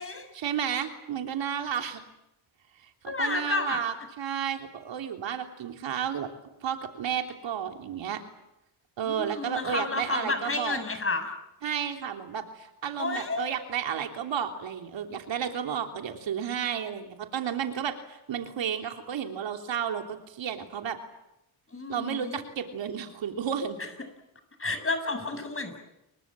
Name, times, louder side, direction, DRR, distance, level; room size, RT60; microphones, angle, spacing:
voice 1, 0.3-2.0 3.0-6.3 6.6-8.2 9.0-10.8 11.6-21.0 21.9-23.8, right 8 dB, 80° right, 4 dB, 3.4 m, -32 dB
voice 2, 3.1-3.8 9.0-11.3 13.0-13.5 21.7-22.4 23.8-23.9 24.6-25.8, left 3 dB, 30° left, 8 dB, 7.3 m, -31 dB
29.5 x 23.5 x 7.6 m, 0.90 s
cardioid pair, 75°, 44 cm